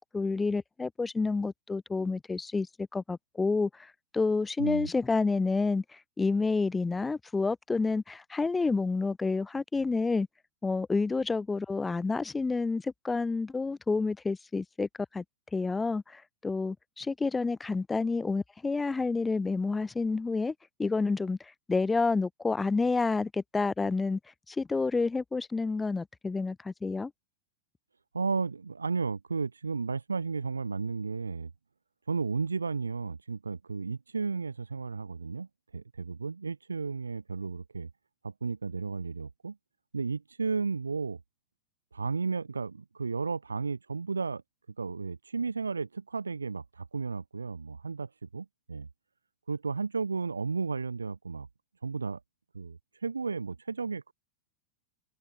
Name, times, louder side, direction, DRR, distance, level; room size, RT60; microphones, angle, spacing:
voice 1, 0.1-10.3 10.6-15.2 15.5-20.5 20.8-24.2 24.5-27.1, left 4 dB, 10° left, 2.9 m, -29 dB
voice 2, 4.6-4.9 28.1-31.5 32.1-37.9 38.2-39.6 39.9-41.2 41.9-44.4 44.8-48.9 49.5-51.5 51.8-52.2 52.5-54.1, right 4 dB, 75° right, 5.0 m, -33 dB
figure-of-eight pair, 90°, 0 cm